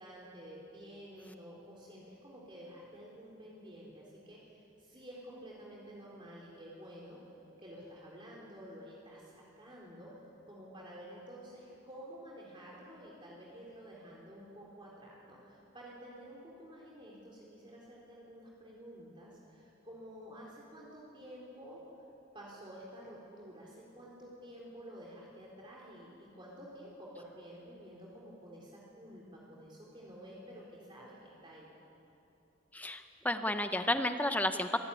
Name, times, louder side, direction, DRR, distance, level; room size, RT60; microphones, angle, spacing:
voice 1, 0.0-7.2 7.6-10.1 10.5-21.8 22.3-31.7, equal, 25° right, -4 dB, 3.8 m, -51 dB
voice 2, 32.7-34.8, left 1 dB, 10° left, 7 dB, 0.7 m, -32 dB
25.5 x 17.0 x 9.9 m, 2.9 s
head